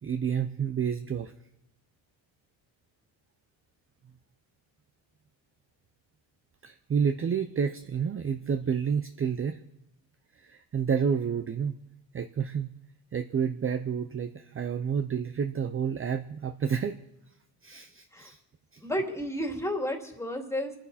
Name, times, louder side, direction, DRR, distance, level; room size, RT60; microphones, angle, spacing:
voice 1, 0.0-1.3 6.6-9.6 10.4-11.7 12.1-12.8 13.1-17.0 17.6-18.4 18.7-18.8, right 7 dB, 30° right, 8 dB, 0.7 m, -29 dB
voice 2, 18.8-20.7, equal, 5° left, 3 dB, 2.6 m, -32 dB
25.0 x 10.0 x 4.2 m, 0.82 s
cardioid pair, 100°, 45 cm